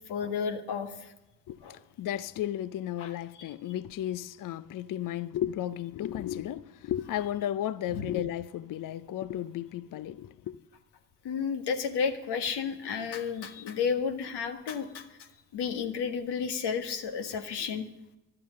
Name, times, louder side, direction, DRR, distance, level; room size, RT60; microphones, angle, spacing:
voice 1, 0.1-0.9 1.6-1.7 3.0-3.1 7.9-8.0 11.2-17.9, left 6 dB, 65° left, 1.5 m, -32 dB
voice 2, 1.5-10.6, left 11 dB, 45° left, 0.7 m, -34 dB
14.0 x 12.0 x 6.4 m
hypercardioid pair, 40°, 44 cm